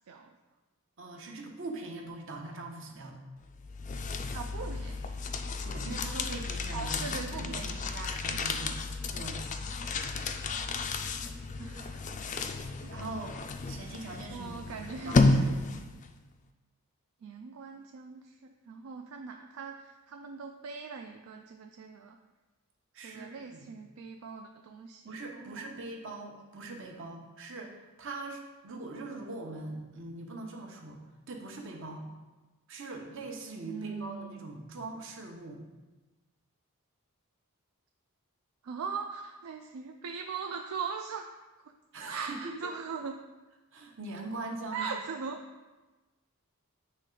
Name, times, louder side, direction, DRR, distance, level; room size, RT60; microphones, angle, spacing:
voice 1, 1.0-3.2 5.6-8.8 9.1-9.4 12.7-13.4 13.7-15.6 22.9-23.7 25.1-31.0 31.3-32.0 32.7-35.6 41.9-42.6 43.7-45.0, right 2 dB, 60° right, 1 dB, 0.9 m, -42 dB
sound 1, 3.5-16.1, left 3 dB, 35° left, 0.3 m, -32 dB
voice 2, 4.3-5.4 6.7-7.9 8.3-8.8 11.5-12.1 12.8-12.9 14.3-15.2 17.2-18.4 18.7-22.2 23.0-25.0 25.4-25.7 33.6-34.5 38.6-41.2 42.1-43.2 44.7-45.5, right 5 dB, 75° right, 4 dB, 0.3 m, -40 dB
8.3 x 3.2 x 3.8 m, 1.2 s
head